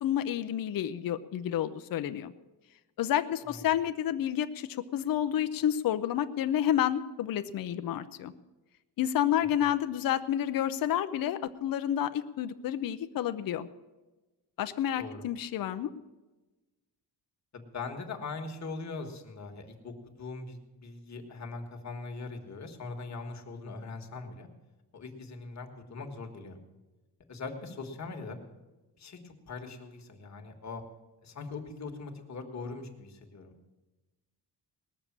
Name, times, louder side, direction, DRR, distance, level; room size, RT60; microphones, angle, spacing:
voice 1, 0.0-2.3 3.0-8.3 9.0-13.7 14.6-15.9, left 10 dB, 60° left, 10 dB, 0.6 m, -30 dB
voice 2, 17.5-24.5 24.9-26.6 27.3-28.4 29.0-30.8 31.2-33.5, left 3 dB, 45° left, 4 dB, 1.6 m, -41 dB
19.5 x 6.8 x 7.3 m, 1.1 s
wide cardioid pair, 155°, 40 cm